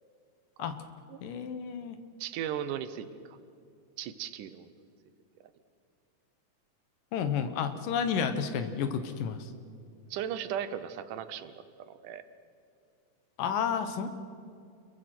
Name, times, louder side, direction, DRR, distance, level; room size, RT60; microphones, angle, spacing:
voice 1, 1.2-2.0 7.1-9.5 13.4-14.1, left 7 dB, 90° left, 9 dB, 2.9 m, -31 dB
voice 2, 2.2-3.4 4.0-4.7 10.1-12.2, right 9 dB, 80° right, 12 dB, 2.4 m, -37 dB
28.5 x 22.5 x 6.1 m, 2.5 s
omnidirectional pair, 3.7 m